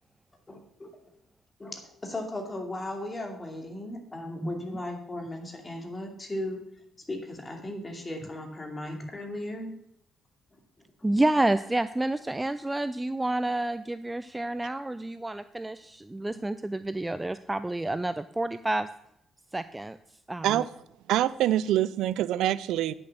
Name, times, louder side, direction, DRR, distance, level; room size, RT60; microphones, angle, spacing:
voice 1, 0.5-0.9 1.6-6.6 7.1-9.7, left 1 dB, 25° left, 2.6 m, -36 dB
voice 2, 11.0-18.9 19.5-20.6, right 2 dB, 15° right, 0.4 m, -29 dB
voice 3, 21.1-22.9, right 13 dB, 85° right, 0.4 m, -25 dB
9.9 x 6.9 x 6.6 m
cardioid pair, 90°, 0 cm